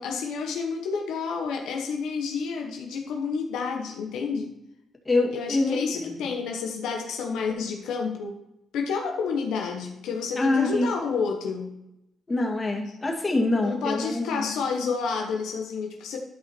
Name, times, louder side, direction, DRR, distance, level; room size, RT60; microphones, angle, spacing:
voice 1, 0.0-4.5 5.3-8.4 8.7-11.7 13.6-16.2, left 5 dB, 90° left, 2 dB, 1.1 m, -29 dB
voice 2, 5.1-6.3 10.4-10.9 12.3-14.5, left 2 dB, 25° left, 1 dB, 2.3 m, -25 dB
12.0 x 5.1 x 4.5 m, 0.85 s
cardioid pair, 90°, 0 cm